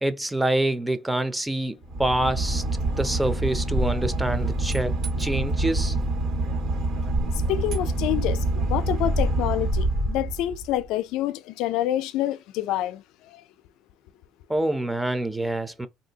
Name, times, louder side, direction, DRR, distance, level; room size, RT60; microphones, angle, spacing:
voice 1, 0.0-2.6 2.9-4.9 5.2-6.0 14.5-15.9, right 1 dB, 10° right, 0.5 m, -26 dB
Boat Water vehicle / Engine, 1.8-10.8, right 2 dB, 70° right, 1.5 m, -26 dB
voice 2, 7.3-13.4, left 13 dB, 75° left, 0.4 m, -28 dB
3.2 x 2.7 x 2.8 m
supercardioid pair, 95°, 0 cm